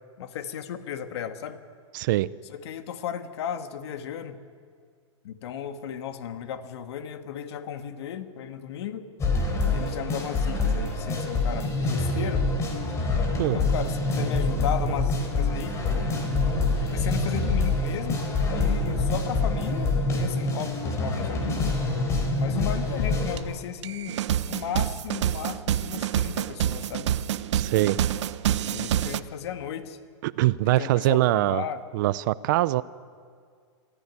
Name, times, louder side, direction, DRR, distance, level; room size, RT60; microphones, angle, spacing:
voice 1, 0.2-1.6 2.5-4.4 5.2-9.1 9.7-12.5 13.5-15.8 16.8-18.2 18.5-21.7 22.4-27.1 28.7-30.0 30.6-31.8, left 9 dB, 60° left, 8 dB, 1.8 m, -35 dB
voice 2, 1.9-2.3 13.4-13.6 27.5-28.0 30.2-31.6 31.9-32.8, right 17 dB, 40° right, 18 dB, 0.5 m, -23 dB
sound 1, 9.2-23.4, left 2 dB, 20° left, 3.5 m, -26 dB
sound 2, 23.4-23.5 23.8-29.2, right 11 dB, 70° right, 0.8 m, -27 dB
25.5 x 14.0 x 9.6 m, 2.1 s
hypercardioid pair, 155°, 16 cm